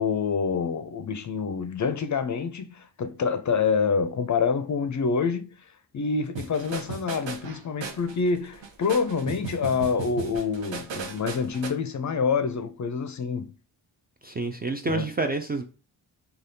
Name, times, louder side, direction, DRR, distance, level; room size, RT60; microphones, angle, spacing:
voice 1, 0.0-5.6 5.9-13.5 14.9-15.1, left 5 dB, 40° left, 0.5 m, -27 dB
sound 1, 6.4-11.7, right 6 dB, 65° right, 0.8 m, -37 dB
voice 2, 14.2-15.6, right 3 dB, 20° right, 0.3 m, -28 dB
3.3 x 2.4 x 2.7 m
supercardioid pair, 40°, 48 cm